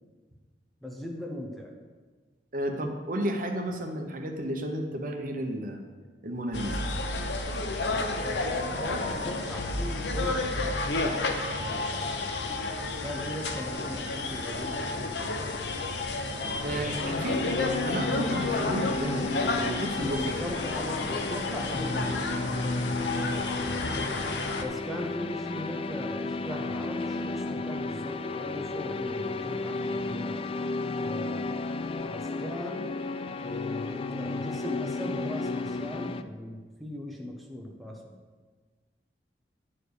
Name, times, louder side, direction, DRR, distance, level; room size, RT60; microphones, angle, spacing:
voice 1, 0.8-1.8 8.1-11.3 11.6-12.3 13.0-15.5 16.7-17.3 20.2-23.0 24.5-30.6 31.0-31.5 32.0-32.9 33.4-38.2, left 1 dB, ahead, 0 dB, 0.9 m, -39 dB
voice 2, 2.5-5.8 6.2-6.8 16.6-19.3 19.6-20.3, right 1 dB, 50° right, 3 dB, 0.9 m, -32 dB
sound 1, 6.5-24.6, left 2 dB, 80° left, 0.9 m, -31 dB
sound 2, 17.0-36.2, left 3 dB, 30° left, 0.3 m, -33 dB
9.7 x 4.8 x 6.6 m, 1.4 s
head